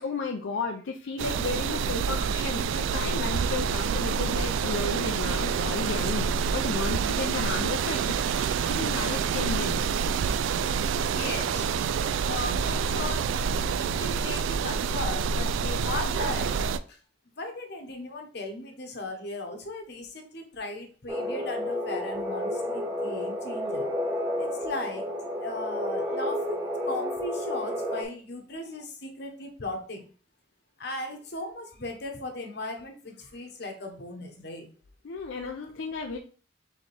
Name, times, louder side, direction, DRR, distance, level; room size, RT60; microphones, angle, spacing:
voice 1, 0.0-6.3 6.5-9.8 35.0-36.2, left 4 dB, 85° left, 2 dB, 0.5 m, -33 dB
sound 1, 1.2-16.8, right 6 dB, 90° right, 0.3 m, -27 dB
voice 2, 11.0-11.8 12.3-13.3 13.7-17.0 17.4-23.9 24.4-25.1 25.4-30.1 30.8-34.7, left 2 dB, 60° left, 3 dB, 1.0 m, -37 dB
sound 2, 21.1-28.0, left 1 dB, 15° right, 0.8 m, -31 dB
4.2 x 3.6 x 3.3 m, 0.41 s
head